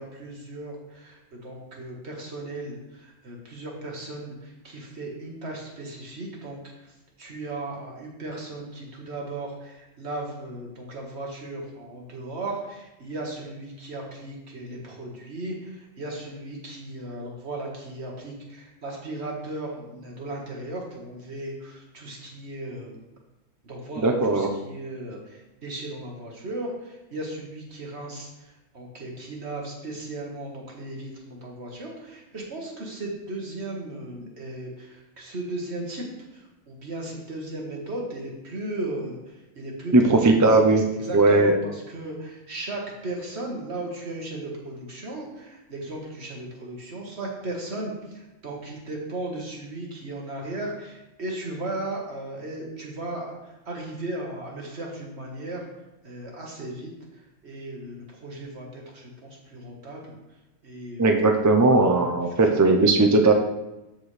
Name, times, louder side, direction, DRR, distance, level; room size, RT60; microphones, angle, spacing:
voice 1, 0.0-6.9 7.2-23.0 23.6-36.1 36.3-40.6 41.0-55.7 56.0-60.1 60.6-61.2 62.3-62.4 62.7-62.8, right 2 dB, 55° right, -1 dB, 1.9 m, -36 dB
voice 2, 24.0-24.5 39.9-40.8 41.1-41.5 61.0-63.3, right 3 dB, 25° right, 4 dB, 0.4 m, -18 dB
13.0 x 4.5 x 3.3 m, 0.98 s
omnidirectional pair, 1.3 m